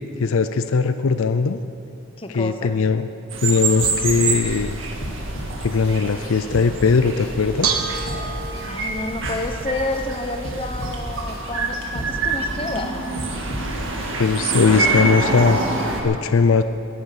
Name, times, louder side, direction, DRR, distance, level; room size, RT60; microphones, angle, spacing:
voice 1, 0.2-1.6 2.3-3.1 3.4-4.8 5.6-7.9 14.2-15.6 16.0-16.6, left 4 dB, 70° left, 11 dB, 0.5 m, -19 dB
voice 2, 2.2-2.7 8.2-8.3 8.7-12.9, left 2 dB, 25° left, 5 dB, 1.0 m, -29 dB
sound 1, 3.3-16.0, right 3 dB, 60° right, 2.0 m, -26 dB
sound 2, 3.8-4.6 5.0-5.9 6.4-7.3 7.7-8.6 9.1-10.0 10.4-11.4 11.8-12.7 13.2-14.1 14.5-14.6, equal, 50° left, 2.7 m, -33 dB
Bell / Dishes pots and pans, 7.2-13.9, right 4 dB, 85° right, 1.4 m, -32 dB
18.0 x 10.5 x 6.5 m, 2.6 s
head